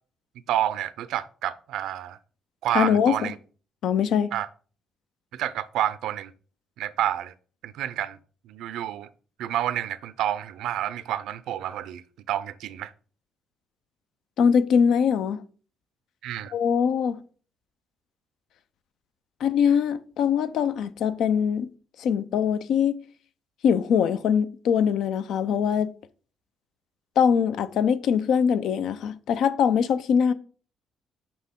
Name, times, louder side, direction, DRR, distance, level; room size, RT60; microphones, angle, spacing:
voice 1, 0.5-2.2 2.6-3.4 4.3-4.5 5.3-6.3 6.8-7.3 7.6-8.2 8.4-9.1 9.4-12.9 16.2-16.5, right 11 dB, 85° right, 0.5 m, -29 dB
voice 2, 2.7-3.3 3.8-4.3 14.4-15.4 16.5-17.2 19.4-21.7 22.0-22.9 23.6-25.9 27.2-30.3, left 7 dB, 80° left, 0.6 m, -22 dB
6.0 x 5.6 x 3.7 m
cardioid pair, 90°, 0 cm